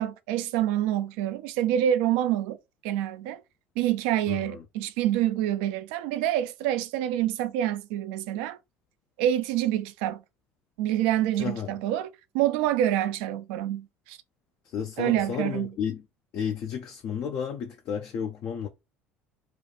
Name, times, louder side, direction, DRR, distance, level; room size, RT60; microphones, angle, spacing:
voice 1, 0.0-2.6 2.8-3.4 3.8-8.6 9.2-10.2 10.8-14.2 15.0-15.7, right 12 dB, 65° right, 0.4 m, -27 dB
voice 2, 4.3-4.6 11.4-11.7 14.6-16.0 16.3-18.7, left 7 dB, 45° left, 0.5 m, -32 dB
2.9 x 2.3 x 3.9 m
figure-of-eight pair, 60°, 6 cm